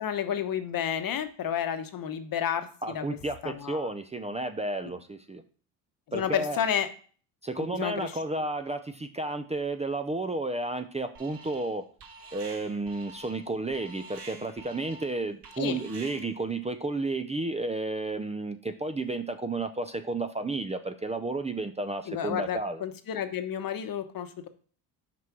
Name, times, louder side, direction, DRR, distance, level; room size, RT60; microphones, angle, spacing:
voice 1, 0.0-3.0 3.4-3.9 6.1-6.9 7.6-8.1 15.6-15.8 22.1-24.5, left 9 dB, 50° left, 10 dB, 1.1 m, -31 dB
voice 2, 2.8-5.4 6.1-6.6 7.4-11.9 12.3-22.8, right 2 dB, 15° right, 9 dB, 0.6 m, -32 dB
Alarm, 11.1-11.7 12.0-16.5, right 3 dB, 60° right, 2.8 m, -47 dB
6.0 x 4.7 x 6.0 m, 0.42 s
supercardioid pair, 70°, 45 cm